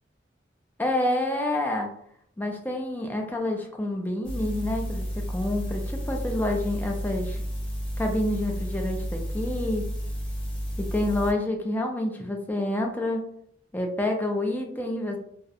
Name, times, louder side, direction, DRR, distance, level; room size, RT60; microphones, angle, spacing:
voice 1, 0.8-1.9 2.4-7.4 8.0-9.9 10.8-13.2 13.7-15.2, left 1 dB, 10° left, 2 dB, 0.3 m, -28 dB
sound 1, 4.2-11.3, equal, 30° left, 0.8 m, -32 dB
2.3 x 2.0 x 2.6 m, 0.68 s
head